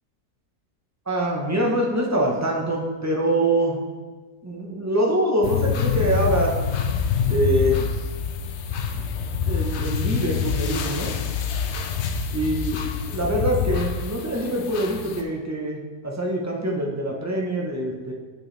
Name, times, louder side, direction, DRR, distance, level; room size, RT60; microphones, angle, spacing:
voice 1, 1.1-3.8 4.4-6.5 7.3-7.8 9.4-11.1 12.3-12.8 13.1-18.1, right 1 dB, 15° right, -1 dB, 0.6 m, -24 dB
sound 1, 5.4-15.2, left 6 dB, 70° left, 0.6 m, -26 dB
8.7 x 4.7 x 3.3 m, 1.4 s
omnidirectional pair, 1.6 m